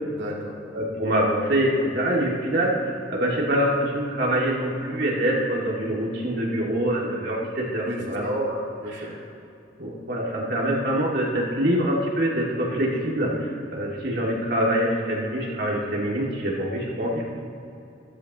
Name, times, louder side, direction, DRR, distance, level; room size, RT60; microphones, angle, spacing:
voice 1, 0.1-0.6 7.8-8.4 8.8-9.1, equal, 90° right, -3 dB, 2.4 m, -35 dB
voice 2, 0.7-8.6 8.9-9.0 9.8-17.2, right 1 dB, 60° right, -3 dB, 2.4 m, -25 dB
14.5 x 14.0 x 3.1 m, 2.8 s
head